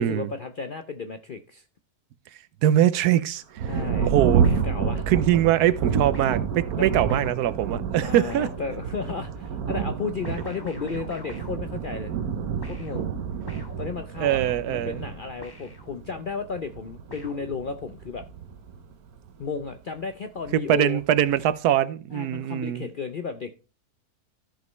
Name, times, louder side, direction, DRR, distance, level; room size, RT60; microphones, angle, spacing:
voice 1, 0.0-1.6 3.7-4.1 4.6-5.1 6.8-6.9 8.0-12.1 12.6-13.1 13.8-14.4 14.7-18.3 19.4-21.0 22.1-23.5, left 5 dB, 65° left, 0.5 m, -33 dB
voice 2, 2.6-3.6 4.0-4.5 5.1-8.5 14.2-15.0 20.5-22.9, right 11 dB, 90° right, 1.2 m, -22 dB
Thunder, 3.6-19.6 20.4-20.5 21.0-21.5, right 7 dB, 70° right, 1.3 m, -29 dB
sound 1, 4.4-5.4 6.1-9.3 10.2-12.3 12.6-16.4 17.1-18.1, left 1 dB, 15° left, 1.2 m, -46 dB
14.0 x 5.3 x 3.1 m
omnidirectional pair, 1.6 m